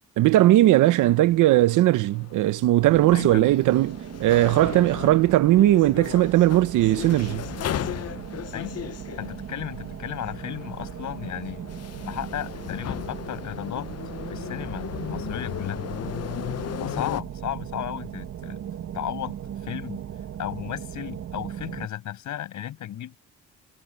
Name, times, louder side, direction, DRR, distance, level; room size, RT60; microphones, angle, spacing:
voice 1, 0.2-7.5, right 15 dB, 85° right, 1.0 m, -19 dB
sound 1, 1.0-17.2, left 11 dB, 55° left, 0.8 m, -36 dB
sound 2, 2.8-21.9, right 9 dB, 60° right, 1.8 m, -37 dB
voice 2, 3.1-3.5 8.5-8.8 9.2-11.7 12.0-13.9 14.3-15.8 16.8-18.6 18.9-20.0 20.4-23.2, left 11 dB, 75° left, 7.8 m, -34 dB
cardioid pair, 90°, 30 cm